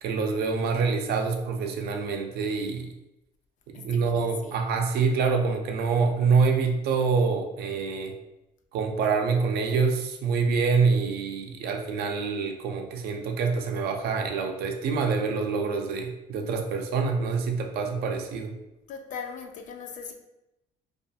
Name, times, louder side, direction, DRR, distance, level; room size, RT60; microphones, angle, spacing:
voice 1, 0.0-2.9 3.7-8.1 8.7-18.5, right 5 dB, 70° right, 4 dB, 0.4 m, -26 dB
voice 2, 3.7-4.6 18.9-20.1, left 6 dB, 50° left, 5 dB, 0.4 m, -39 dB
2.4 x 2.3 x 2.7 m, 0.92 s
cardioid pair, 110°, 17 cm